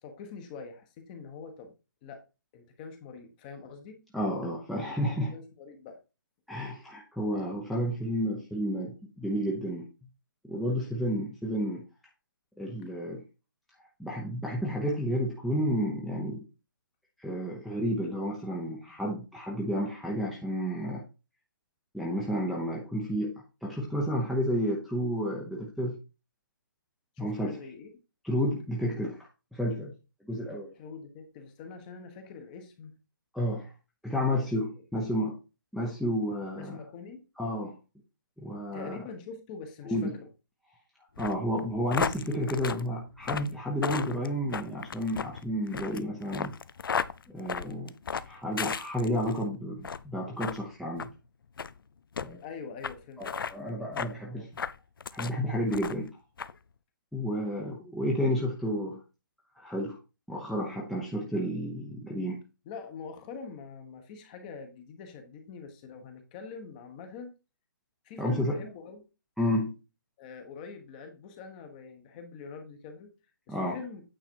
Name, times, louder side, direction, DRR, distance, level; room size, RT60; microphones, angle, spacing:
voice 1, 0.0-1.7 2.0-2.2 2.5-4.0 5.3-6.0 27.2-27.9 30.8-33.0 34.7-34.8 36.5-37.2 38.7-40.3 52.4-53.2 54.2-54.5 62.6-67.3 68.0-69.1 70.2-73.1 73.5-74.0, left 5 dB, 25° left, 6 dB, 1.2 m, -44 dB
voice 2, 4.1-5.4 6.5-9.9 10.4-11.8 12.6-13.2 14.0-16.4 17.2-21.1 21.9-23.3 23.6-26.0 27.2-27.6 28.2-29.2 29.5-29.9 30.3-30.7 33.3-33.7 34.0-35.4 35.7-36.8 37.4-37.8 38.4-39.0 39.8-40.1 41.2-46.5 47.3-47.9 48.2-51.1 52.2-52.4 53.2-54.5 55.1-56.2 57.1-59.0 59.6-60.0 60.3-62.4 68.2-68.7 69.4-69.8 73.5-73.8, equal, ahead, -4 dB, 0.8 m, -31 dB
sound 1, 41.2-49.4 49.8-50.1 50.4-50.6 51.0-51.1 51.6-51.7 52.2-52.3 52.8-52.9 53.2-53.5 54.0-54.1 54.6-55.4 55.7-56.1 56.4-56.5, left 6 dB, 75° left, 0.6 m, -34 dB
8.9 x 3.9 x 4.6 m, 0.30 s
hypercardioid pair, 160°, 12 cm